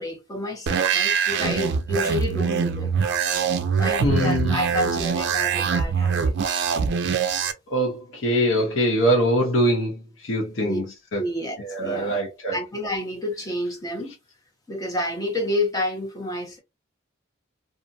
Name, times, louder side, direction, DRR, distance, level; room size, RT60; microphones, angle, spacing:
voice 1, 0.0-2.9 3.8-6.6 10.6-10.8 11.2-12.2 12.5-14.1 14.7-16.6, left 1 dB, 15° left, 1.0 m, -29 dB
sound 1, 0.7-7.5, right 6 dB, 55° right, 0.4 m, -23 dB
voice 2, 4.0-4.6 7.7-10.8 11.1-11.2 11.6-12.6, equal, 65° left, 0.7 m, -23 dB
2.5 x 2.5 x 2.5 m
head